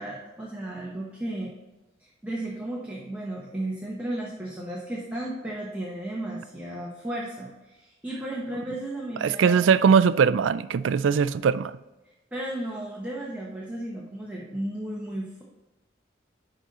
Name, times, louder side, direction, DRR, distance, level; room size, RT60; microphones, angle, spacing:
voice 1, 0.0-1.5 2.0-9.7 12.3-15.4, right 1 dB, 10° right, 1.0 m, -34 dB
voice 2, 9.2-11.8, right 6 dB, 90° right, 0.3 m, -21 dB
10.5 x 4.0 x 4.1 m
head